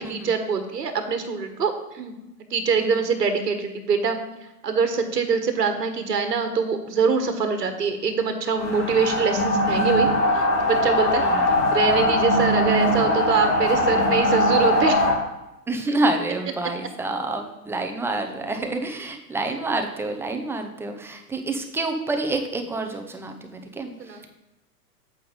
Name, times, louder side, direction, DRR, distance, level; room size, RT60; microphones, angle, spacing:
voice 1, 0.0-2.2 2.5-4.2 4.6-10.1 10.3-11.2 11.7-15.0 24.0-24.3, right 5 dB, 75° right, 7 dB, 1.3 m, -24 dB
sound 1, 8.6-15.1, left 1 dB, 70° left, 2.8 m, -21 dB
voice 2, 15.7-24.3, right 2 dB, 5° right, 4 dB, 0.6 m, -28 dB
8.6 x 8.0 x 3.7 m, 0.95 s
figure-of-eight pair, 105°, 48 cm